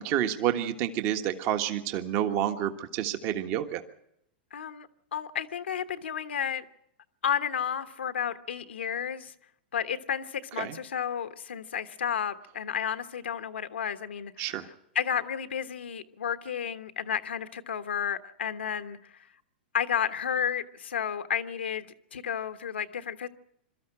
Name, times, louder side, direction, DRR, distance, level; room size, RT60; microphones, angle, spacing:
voice 1, 0.0-3.8 10.6-10.8 14.4-14.7, right 11 dB, 45° right, 1.5 m, -29 dB
voice 2, 4.5-6.6 7.2-9.3 9.7-14.6 14.9-19.0 19.7-23.3, left 8 dB, 85° left, 1.2 m, -32 dB
23.0 x 13.0 x 8.9 m
hypercardioid pair, 120°, 6 cm